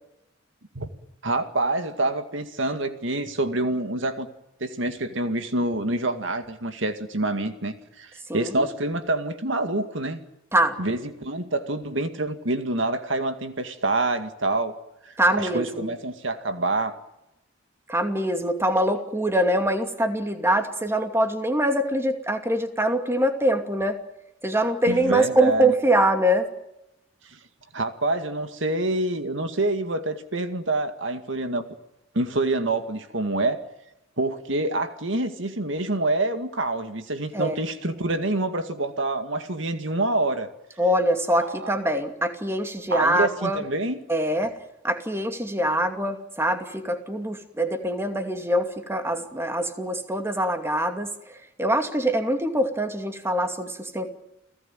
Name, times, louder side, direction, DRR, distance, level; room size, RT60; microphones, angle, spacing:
voice 1, 1.2-4.3 4.6-10.2 10.8-14.8 15.1-16.9 24.9-25.7 27.3-27.4 27.7-31.7 32.1-33.6 34.2-40.5 41.4-41.7 42.9-44.0, right 2 dB, 70° right, 8 dB, 2.2 m, -27 dB
voice 2, 8.3-8.7 10.5-10.8 15.2-15.9 17.9-24.0 24.4-26.5 37.3-37.6 40.8-43.6 44.1-44.5 44.8-54.1, right 1 dB, 15° right, 6 dB, 2.5 m, -24 dB
30.0 x 17.5 x 9.2 m, 0.87 s
head